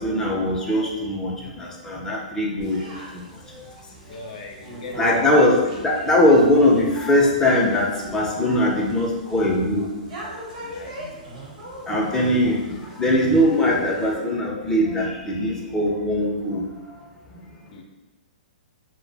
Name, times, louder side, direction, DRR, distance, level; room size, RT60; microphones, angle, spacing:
voice 1, 0.0-3.6 4.1-4.3 5.0-9.9 11.9-16.9, left 1 dB, 10° left, -3 dB, 0.5 m, -21 dB
sound 1, 2.6-14.1, right 1 dB, 55° right, 1.1 m, -40 dB
voice 2, 3.7-5.4 10.6-11.2 17.7-17.8, left 4 dB, 60° left, 2 dB, 0.5 m, -41 dB
2.1 x 2.1 x 3.3 m, 1.1 s
hypercardioid pair, 120°, 5 cm